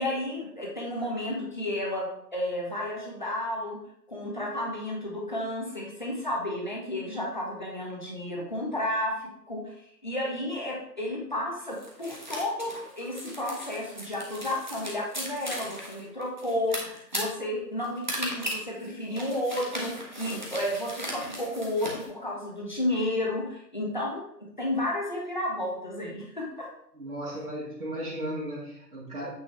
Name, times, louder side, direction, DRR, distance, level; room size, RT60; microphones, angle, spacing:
voice 1, 0.0-3.8 4.1-24.2 24.6-26.7, left 1 dB, 30° left, -2 dB, 1.5 m, -32 dB
sound 1, 11.7-22.1, equal, 30° right, 1.2 m, -37 dB
voice 2, 26.9-29.3, right 1 dB, 55° right, -7 dB, 2.1 m, -35 dB
8.7 x 5.6 x 3.5 m, 0.71 s
figure-of-eight pair, 165°, 50 cm